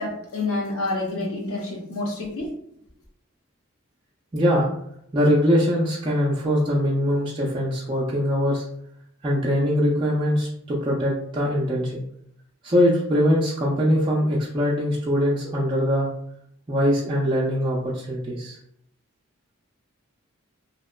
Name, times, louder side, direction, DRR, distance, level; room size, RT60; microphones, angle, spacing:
voice 1, 0.0-2.5, left 2 dB, 85° left, 0 dB, 0.7 m, -28 dB
voice 2, 4.3-4.7 5.1-8.6 9.2-12.0 12.6-16.1 16.7-18.6, equal, 20° right, -6 dB, 0.3 m, -22 dB
2.8 x 2.1 x 2.2 m, 0.72 s
head